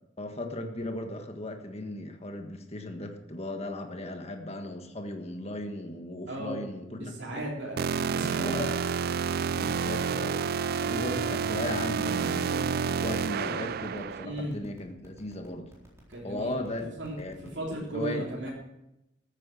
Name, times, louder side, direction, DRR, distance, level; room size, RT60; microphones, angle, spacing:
voice 1, 0.2-7.1 8.4-8.7 9.5-10.4 10.8-15.7 16.2-16.9 17.2-18.5, left 1 dB, 35° left, 5 dB, 1.5 m, -37 dB
voice 2, 6.3-8.6 14.2-14.6 16.1-16.7 17.0-17.2 17.5-18.5, right 1 dB, 70° right, -5 dB, 3.6 m, -36 dB
sound 1, 7.8-14.3, right 6 dB, 55° right, 0.4 m, -29 dB
sound 2, 13.4-17.9, equal, 15° right, 4.0 m, -54 dB
14.0 x 9.1 x 6.1 m, 0.89 s
head